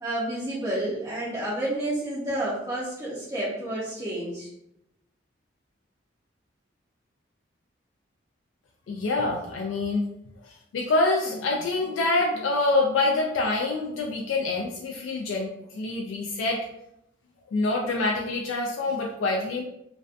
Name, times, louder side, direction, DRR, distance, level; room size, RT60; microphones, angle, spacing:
voice 1, 0.0-4.5, right 1 dB, 20° right, -8 dB, 0.5 m, -30 dB
voice 2, 8.9-10.1 10.4-16.6 17.5-19.6, left 2 dB, 80° left, -1 dB, 0.3 m, -26 dB
2.4 x 2.1 x 2.4 m, 0.83 s
head